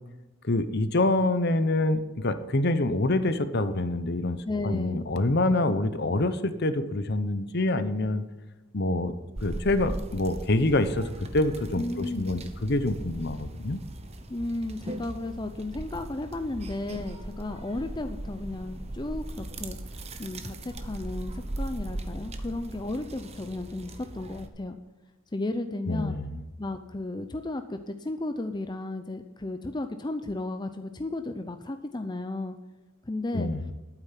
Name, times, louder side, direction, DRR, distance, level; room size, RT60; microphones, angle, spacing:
voice 1, 0.4-4.4 4.6-8.2 8.7-9.1 9.4-11.0 11.3-13.8 25.9-26.4 33.3-33.6, left 2 dB, 50° left, 11 dB, 0.9 m, -26 dB
voice 2, 4.5-5.0 11.8-12.3 14.3-24.8 25.3-26.2 26.6-32.6 33.0-33.5, left 2 dB, 20° left, 7 dB, 0.6 m, -34 dB
sound 1, 9.4-24.5, right 1 dB, 30° right, 1.0 m, -39 dB
11.5 x 9.1 x 5.8 m, 1.2 s
head